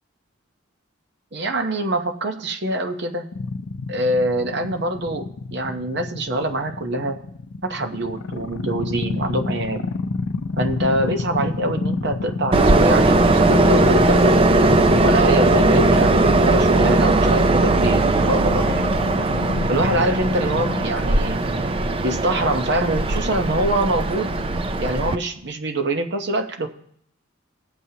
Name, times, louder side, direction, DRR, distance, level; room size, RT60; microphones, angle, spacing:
voice 1, 1.3-3.3 3.9-7.2 7.6-9.9 10.6-14.4 15.0-19.0 19.7-21.4 22.0-24.4 24.8-26.7, right 1 dB, 55° right, 6 dB, 0.8 m, -24 dB
sound 1, 3.3-20.9, left 4 dB, 75° left, 0.5 m, -30 dB
Train, 12.5-25.2, right 2 dB, 25° right, 0.4 m, -18 dB
19.5 x 7.3 x 2.8 m, 0.70 s
head